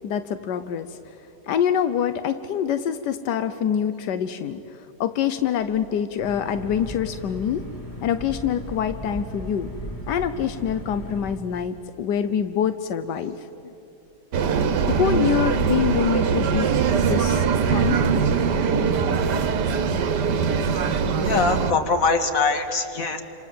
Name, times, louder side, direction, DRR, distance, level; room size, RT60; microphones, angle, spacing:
voice 1, 0.0-1.0 1.5-7.7 8.0-9.7 10.1-13.4 14.9-16.7 17.0-17.5 17.7-18.0, left 8 dB, 90° left, 11 dB, 1.4 m, -25 dB
sound 1, 6.2-11.4, equal, 10° left, 2.3 m, -36 dB
sound 2, 14.3-21.7, right 6 dB, 85° right, 1.7 m, -22 dB
voice 2, 21.2-23.2, left 4 dB, 55° left, 6 dB, 2.3 m, -22 dB
28.0 x 27.0 x 7.6 m, 2.8 s
omnidirectional pair, 1.8 m